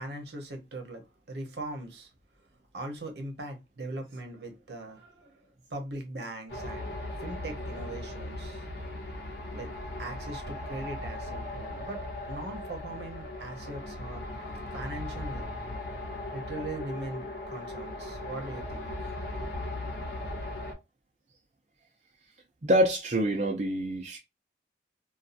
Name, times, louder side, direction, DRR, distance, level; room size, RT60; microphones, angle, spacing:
voice 1, 0.0-2.1 2.7-8.7 9.5-9.7 10.0-12.0 12.3-14.3 14.7-15.5 16.3-19.5, right 1 dB, 75° right, 0.8 m, -40 dB
sound 1, 6.5-20.7, left 1 dB, 70° left, 0.9 m, -38 dB
voice 2, 22.6-24.2, equal, 40° right, 0.5 m, -26 dB
2.7 x 2.3 x 2.5 m
head